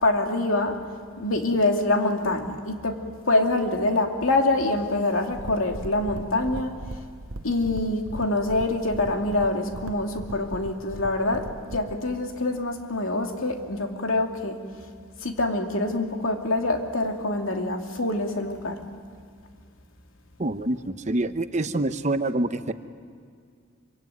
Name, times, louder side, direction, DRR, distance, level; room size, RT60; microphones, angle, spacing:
voice 1, 0.0-0.8 1.2-3.0 3.3-6.7 7.4-11.4 11.7-14.6 15.2-18.8, left 2 dB, 75° left, 3 dB, 2.7 m, -25 dB
sound 1, 5.3-12.0, right 1 dB, 75° right, 1.2 m, -38 dB
voice 2, 20.4-22.7, right 2 dB, 35° right, 10 dB, 0.8 m, -26 dB
25.5 x 25.0 x 9.3 m, 2.2 s
head